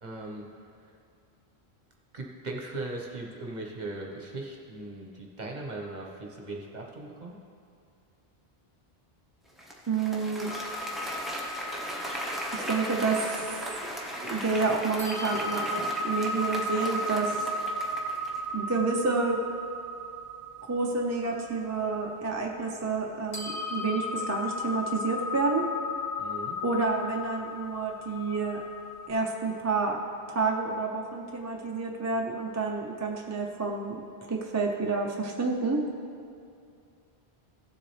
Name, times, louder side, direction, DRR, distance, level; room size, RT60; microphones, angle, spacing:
voice 1, 0.0-0.5 0.8-0.9 2.1-7.4 26.2-26.6, right 2 dB, 45° right, -1 dB, 1.2 m, -39 dB
Applause, 9.6-18.5, equal, ahead, 0.9 m, -37 dB
voice 2, 9.9-10.5 12.5-13.5 14.2-17.3 18.5-19.4 20.7-25.7 26.6-28.6 29.1-30.0 30.3-34.0 34.3-35.9, right 4 dB, 20° right, 0 dB, 0.6 m, -29 dB
sound 1, 10.5-14.6 15.0-23.1 23.3-29.1, left 1 dB, 45° left, 1.6 m, -36 dB
16.0 x 7.3 x 3.3 m, 2.4 s
omnidirectional pair, 1.0 m